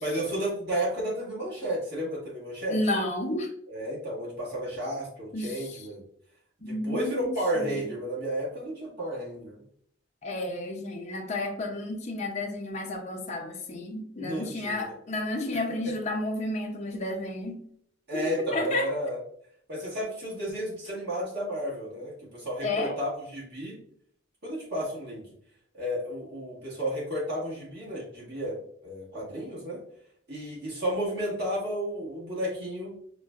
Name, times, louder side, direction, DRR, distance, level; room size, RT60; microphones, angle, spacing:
voice 1, 0.0-2.8 3.7-6.0 6.6-9.6 14.2-14.9 15.8-15.9 18.1-19.2 19.7-23.8 24.4-25.2 25.7-29.8 30.3-32.9, equal, 55° right, 1.3 m, -32 dB
voice 2, 2.7-3.5 5.3-5.9 6.6-7.3 7.6-7.9 10.2-17.6 18.1-18.9 22.6-23.0, left 2 dB, 35° left, 0.4 m, -32 dB
4.4 x 2.1 x 2.2 m
head